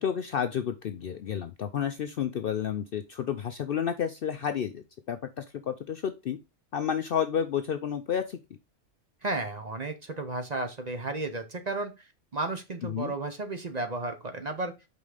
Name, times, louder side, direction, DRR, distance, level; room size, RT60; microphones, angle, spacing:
voice 1, 0.0-6.4 6.7-8.4 12.8-13.1, left 8 dB, 60° left, 8 dB, 0.6 m, -31 dB
voice 2, 9.2-11.9 12.3-14.7, right 2 dB, 40° right, 7 dB, 0.8 m, -33 dB
5.4 x 3.9 x 4.9 m, 0.25 s
omnidirectional pair, 1.3 m